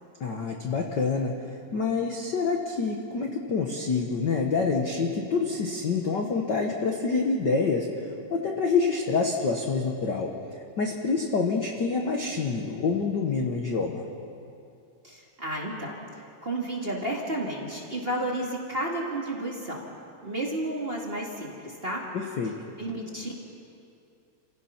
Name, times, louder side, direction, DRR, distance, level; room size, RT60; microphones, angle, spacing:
voice 1, 0.2-10.3 10.8-14.0 22.1-22.5, left 4 dB, 50° left, 1 dB, 1.3 m, -27 dB
voice 2, 15.0-15.9 16.4-19.8 20.2-22.0 22.8-23.4, right 1 dB, 20° right, -2 dB, 2.0 m, -32 dB
29.0 x 16.5 x 5.8 m, 2.6 s
omnidirectional pair, 3.5 m